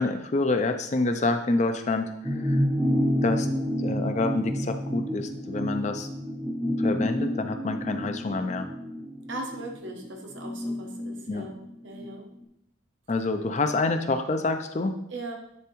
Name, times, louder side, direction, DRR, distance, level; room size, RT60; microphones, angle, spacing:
voice 1, 0.0-2.6 3.2-3.5 3.8-6.1 6.8-8.7 11.3-11.5 13.1-15.0, left 3 dB, 35° left, 7 dB, 0.4 m, -27 dB
sound 1, 2.2-12.1 12.4-12.5, equal, 5° right, 0.7 m, -29 dB
voice 2, 9.3-12.3 15.1-15.3, right 2 dB, 70° right, 2 dB, 1.1 m, -38 dB
10.0 x 3.4 x 3.1 m, 0.77 s
head